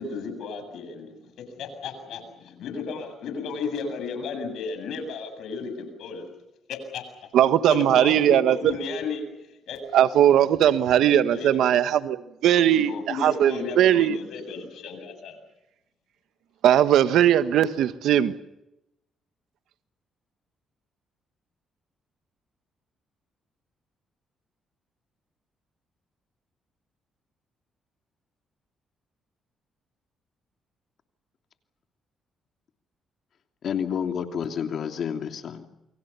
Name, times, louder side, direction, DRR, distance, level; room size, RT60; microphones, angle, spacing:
voice 1, 0.0-6.2 6.7-7.0 7.7-9.2 9.7-9.8 11.3-11.6 12.6-15.4, left 4 dB, 75° left, 8 dB, 7.7 m, -34 dB
voice 2, 7.3-8.7 9.9-14.2 16.6-18.3, right 10 dB, 80° right, 12 dB, 1.3 m, -19 dB
voice 3, 33.6-35.7, left 7 dB, 60° left, 6 dB, 2.9 m, -29 dB
29.0 x 24.0 x 7.0 m, 0.91 s
cardioid pair, 90°, 0 cm